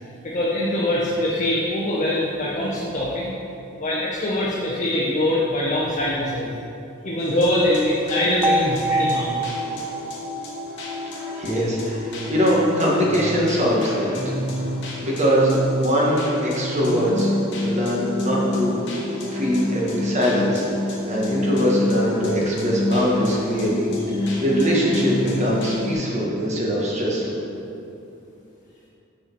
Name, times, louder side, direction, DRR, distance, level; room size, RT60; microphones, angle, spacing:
voice 1, 0.2-3.3 3.8-6.5 7.0-9.4 24.2-24.3, left 1 dB, 35° left, -5 dB, 0.8 m, -23 dB
sound 1, 7.2-25.9, left 2 dB, 60° left, 1.2 m, -28 dB
sound 2, 8.4-12.4, right 1 dB, 10° right, 0.3 m, -27 dB
voice 2, 11.3-14.3 15.0-17.3 17.6-18.8 19.3-23.9 24.2-27.4, equal, 35° right, -4 dB, 1.3 m, -22 dB
6.7 x 4.1 x 5.9 m, 2.8 s
head